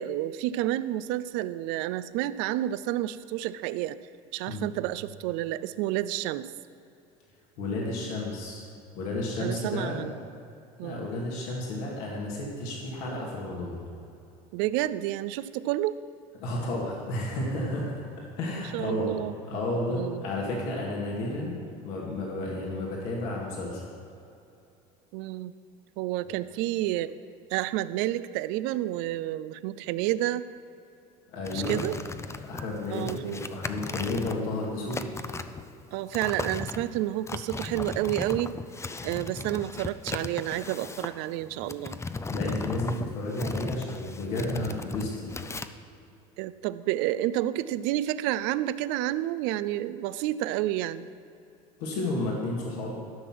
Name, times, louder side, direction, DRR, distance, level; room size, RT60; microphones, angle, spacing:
voice 1, 0.0-4.0 4.3-6.5 9.4-10.2 10.8-11.1 14.5-16.0 18.5-19.3 19.9-20.3 25.1-25.5 26.0-27.2 27.5-30.5 31.5-32.0 32.9-33.4 35.9-38.5 39.0-42.0 46.4-51.1, right 14 dB, 65° right, 15 dB, 0.5 m, -30 dB
voice 2, 7.6-8.6 9.0-10.0 10.8-13.8 16.4-19.1 19.5-21.5 21.8-23.8 31.3-31.8 32.4-35.0 42.3-45.3 51.8-53.0, left 2 dB, 75° left, -3 dB, 2.3 m, -32 dB
sound 1, 31.4-45.7, left 3 dB, 15° left, 0.5 m, -37 dB
13.5 x 6.1 x 5.9 m, 2.6 s
hypercardioid pair, 80°, 19 cm